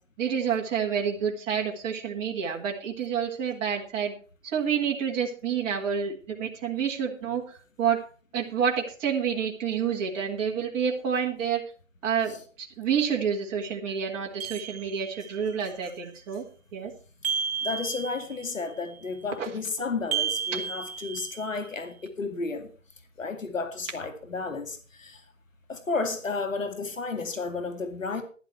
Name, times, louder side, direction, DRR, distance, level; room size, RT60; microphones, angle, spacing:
voice 1, 0.2-4.1 4.4-8.0 8.3-11.6 12.0-16.4 16.7-16.9 19.4-19.5, right 7 dB, 20° right, -1 dB, 1.6 m, -28 dB
sound 1, 14.4-15.4 17.2-18.5 20.1-21.6, right 7 dB, 55° right, 1.4 m, -32 dB
voice 2, 17.6-22.7 23.2-25.2 25.7-28.2, left 4 dB, 90° left, 8 dB, 2.3 m, -32 dB
12.0 x 11.0 x 4.5 m, 0.39 s
hypercardioid pair, 150°, 38 cm